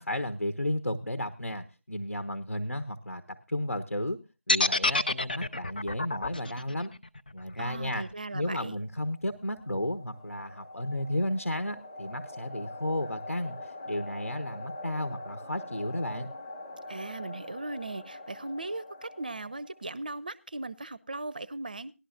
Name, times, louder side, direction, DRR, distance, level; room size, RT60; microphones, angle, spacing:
voice 1, 0.0-4.2 4.5-6.9 7.3-8.0 8.3-16.3, left 1 dB, 75° left, 10 dB, 1.1 m, -33 dB
sound 1, 4.5-8.5, left 2 dB, 35° left, 0.5 m, -28 dB
voice 2, 7.6-8.8 16.9-21.9, right 2 dB, 35° right, 19 dB, 0.5 m, -38 dB
sound 2, 9.1-20.0, left 2 dB, 20° left, 0.9 m, -44 dB
18.5 x 11.5 x 2.5 m, 0.27 s
figure-of-eight pair, 165°, 8 cm